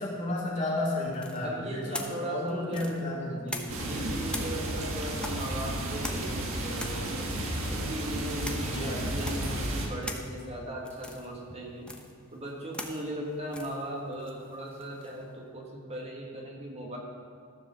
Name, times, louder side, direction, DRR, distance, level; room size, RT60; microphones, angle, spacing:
voice 1, 0.0-4.0 8.6-9.0, left 1 dB, 35° left, -5 dB, 2.6 m, -33 dB
sound 1, 1.1-4.0 4.3-15.2, left 1 dB, 5° left, 0.8 m, -43 dB
voice 2, 1.4-3.0 3.3-7.3 7.7-11.9 12.3-17.0, right 1 dB, 30° right, -1 dB, 1.3 m, -38 dB
sound 2, 3.7-9.9, right 1 dB, 70° right, 1.6 m, -33 dB
13.5 x 5.0 x 6.7 m, 2.3 s
head